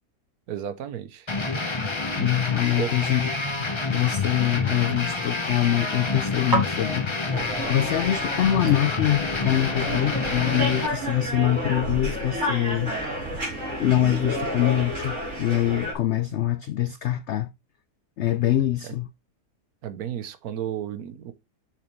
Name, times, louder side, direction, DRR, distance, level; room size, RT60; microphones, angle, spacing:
voice 1, 0.5-1.3 2.8-2.9 19.8-21.3, right 10 dB, 70° right, 1.2 m, -32 dB
sound 1, 1.3-10.9, left 3 dB, 20° left, 0.9 m, -28 dB
voice 2, 2.2-3.3 3.9-12.9 13.8-17.5 18.2-19.1, left 12 dB, 85° left, 0.6 m, -24 dB
sound 2, 3.5-9.3, right 2 dB, 15° right, 1.3 m, -36 dB
sound 3, 7.3-15.9, equal, 40° right, 3.9 m, -31 dB
6.9 x 6.4 x 3.1 m
omnidirectional pair, 1.7 m